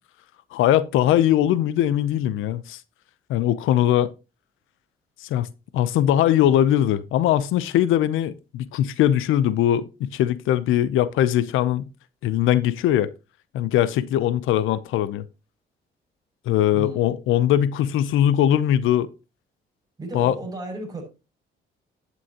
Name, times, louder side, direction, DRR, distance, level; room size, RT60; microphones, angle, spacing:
voice 1, 0.5-2.8 3.3-4.1 5.2-5.5 5.7-11.9 12.2-13.1 13.5-15.2 16.5-19.1 20.1-20.3, left 11 dB, 85° left, 0.7 m, -21 dB
voice 2, 16.7-17.1 20.0-21.0, right 2 dB, 20° right, 6.3 m, -34 dB
11.0 x 9.1 x 2.9 m
cardioid pair, 90°, 20 cm